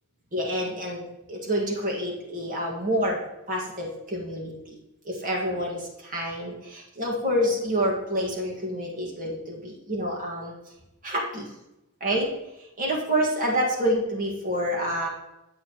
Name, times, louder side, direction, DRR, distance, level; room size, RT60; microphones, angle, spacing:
voice 1, 0.3-3.2 3.5-4.7 5.0-10.5 11.0-11.5 12.0-12.3 12.8-15.1, equal, 40° right, -2 dB, 2.0 m, -28 dB
8.8 x 8.5 x 3.1 m, 0.91 s
head